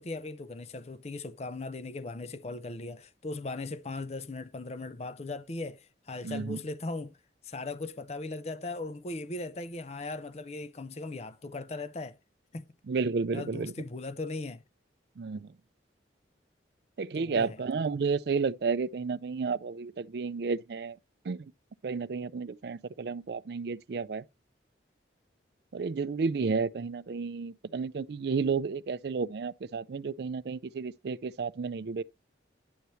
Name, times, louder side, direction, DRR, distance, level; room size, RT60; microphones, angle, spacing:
voice 1, 0.0-7.1 7.4-12.2 12.5-12.7 13.3-14.6 17.1-17.6, left 2 dB, 35° left, 0.5 m, -38 dB
voice 2, 6.2-6.6 12.9-13.7 15.2-15.5 17.0-21.0 21.2-21.5 21.8-24.2 25.7-32.0, right 5 dB, 60° right, 0.4 m, -32 dB
10.0 x 6.9 x 3.1 m
head